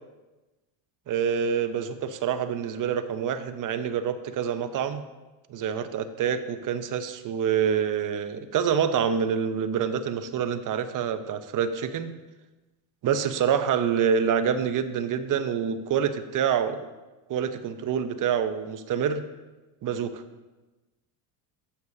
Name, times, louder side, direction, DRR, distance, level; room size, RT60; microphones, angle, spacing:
voice 1, 1.1-5.0 5.5-12.1 13.0-16.9 17.3-19.2 19.8-20.2, right 7 dB, 40° right, 10 dB, 0.8 m, -26 dB
12.5 x 8.2 x 2.8 m, 1.1 s
supercardioid pair, 105°, 48 cm